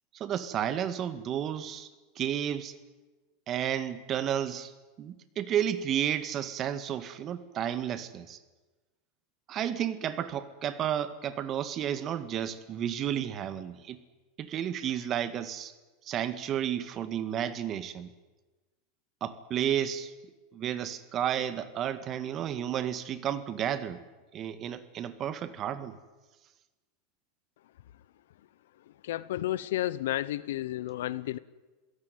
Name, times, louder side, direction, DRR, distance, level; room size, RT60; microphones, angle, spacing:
voice 1, 0.1-1.9 2.2-2.8 3.5-4.7 5.0-8.4 9.5-14.0 14.4-15.7 16.0-18.1 19.2-20.1 20.5-24.0 24.3-26.0, right 10 dB, 35° right, 12 dB, 1.9 m, -32 dB
voice 2, 28.9-31.4, left 14 dB, 85° left, 18 dB, 1.0 m, -32 dB
26.5 x 17.5 x 9.5 m, 1.2 s
supercardioid pair, 130°, 0 cm